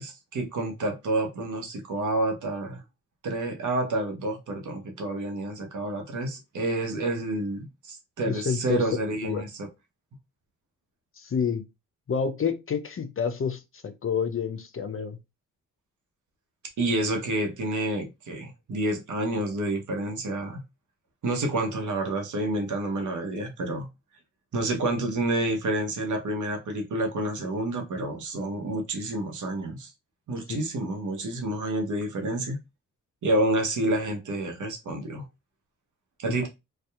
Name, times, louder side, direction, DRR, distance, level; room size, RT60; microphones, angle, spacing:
voice 1, 0.0-2.8 3.2-9.7 16.8-20.6 21.2-23.9 24.5-29.9 30.3-32.6 33.2-35.2 36.2-36.5, right 1 dB, 60° right, 0.9 m, -29 dB
voice 2, 8.2-8.8 9.2-9.4 11.2-11.7 12.1-15.2 30.5-30.6 36.3-36.4, left 6 dB, 40° left, 0.6 m, -29 dB
2.6 x 2.3 x 2.3 m
hypercardioid pair, 40°, 35 cm